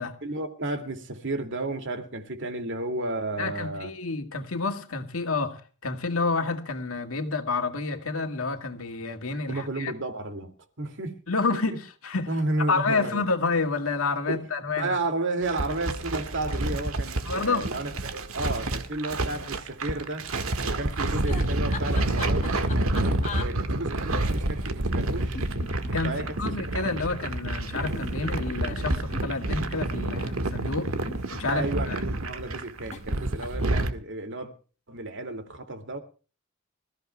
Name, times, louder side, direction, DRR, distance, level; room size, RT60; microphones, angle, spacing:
voice 1, 0.2-3.9 9.5-10.5 10.8-11.2 11.5-11.6 12.3-13.2 14.3-14.4 14.8-20.3 20.6-22.5 22.7-25.4 26.0-26.4 26.6-26.9 31.5-34.5 34.9-36.0, right 2 dB, 65° right, 2.4 m, -32 dB
voice 2, 3.4-5.6 5.8-9.9 11.3-11.7 12.0-12.3 12.7-15.0 17.3-17.6 25.9-30.9 31.3-31.6, left 3 dB, 80° left, 2.1 m, -29 dB
sound 1, 15.4-33.9, right 2 dB, 85° right, 1.7 m, -29 dB
sound 2, 21.3-23.5 24.9-26.5 27.7-30.0 30.9-31.9 32.9-33.1 33.4-33.8, left 3 dB, 35° left, 1.5 m, -40 dB
26.0 x 15.0 x 2.3 m
head